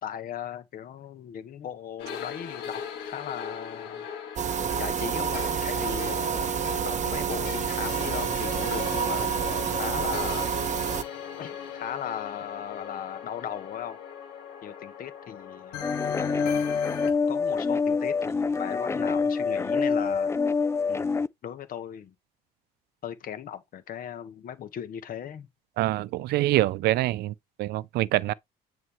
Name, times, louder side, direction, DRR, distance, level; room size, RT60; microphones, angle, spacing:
voice 1, 0.0-4.1 4.8-6.6 6.8-10.5 11.4-14.0 14.6-16.8 17.3-20.3 20.9-22.1 23.0-25.5, left 9 dB, 55° left, 1.5 m, -38 dB
sound 1, 2.0-17.1, left 8 dB, 80° left, 1.8 m, -38 dB
sound 2, 4.4-11.0, right 8 dB, 45° right, 1.0 m, -28 dB
sound 3, 15.8-21.3, left 5 dB, 15° left, 0.4 m, -26 dB
voice 2, 25.8-27.3 27.6-28.3, right 16 dB, 70° right, 0.6 m, -25 dB
9.5 x 4.1 x 3.2 m
supercardioid pair, 85°, 17 cm